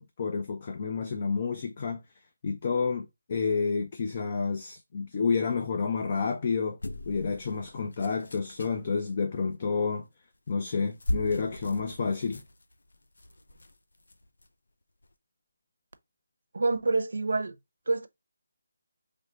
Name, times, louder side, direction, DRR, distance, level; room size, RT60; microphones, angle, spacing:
voice 1, 0.0-2.0 2.4-6.8 7.1-10.1 10.5-12.4, left 5 dB, 30° left, 0.4 m, -29 dB
sound 1, 6.8-8.9 10.3-10.5 10.9-14.5 15.0-15.1, left 1 dB, 75° left, 0.6 m, -38 dB
voice 2, 16.5-17.5 17.9-18.1, right 3 dB, 65° right, 0.7 m, -27 dB
3.4 x 3.2 x 3.7 m
figure-of-eight pair, 175°, 0 cm